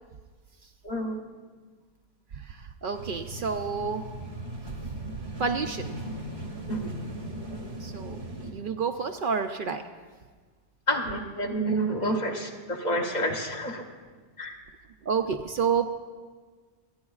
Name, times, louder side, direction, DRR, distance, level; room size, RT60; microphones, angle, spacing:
voice 1, 0.8-1.2 6.7-7.0 10.9-13.8 14.4-14.6, right 1 dB, 45° left, 2 dB, 1.1 m, -29 dB
voice 2, 2.3-4.1 5.4-5.9 7.8-9.8 15.0-15.9, right 6 dB, 60° right, 6 dB, 0.6 m, -29 dB
sound 1, 2.9-8.5, right 1 dB, 90° right, 1.7 m, -38 dB
25.5 x 9.5 x 2.4 m, 1.5 s
omnidirectional pair, 1.1 m